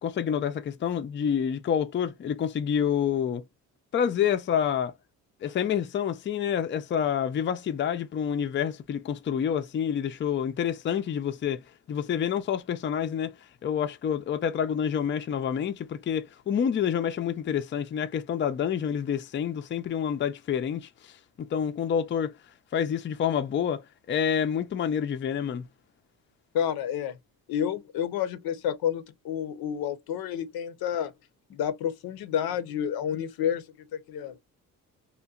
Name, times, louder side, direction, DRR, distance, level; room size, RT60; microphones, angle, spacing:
voice 1, 0.0-3.4 3.9-4.9 5.4-13.3 13.6-21.1 21.4-22.3 22.7-25.7, left 8 dB, 35° left, 0.4 m, -28 dB
voice 2, 26.5-27.2 27.5-31.1 31.5-33.6 33.9-34.4, left 9 dB, 80° left, 0.6 m, -30 dB
2.7 x 2.2 x 2.3 m
cardioid pair, 80°, 36 cm